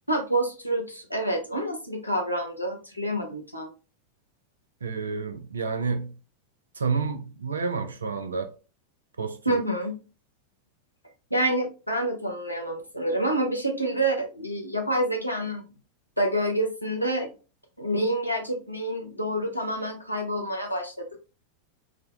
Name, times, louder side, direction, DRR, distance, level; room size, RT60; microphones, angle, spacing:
voice 1, 0.1-3.7 9.5-10.0 11.3-15.6 16.2-17.3 17.8-21.2, right 1 dB, 90° left, 0.6 m, -27 dB
voice 2, 4.8-6.2 6.7-8.5 9.2-9.6, right 5 dB, 75° right, 0.4 m, -30 dB
3.4 x 2.1 x 2.3 m
figure-of-eight pair, 90°, 0 cm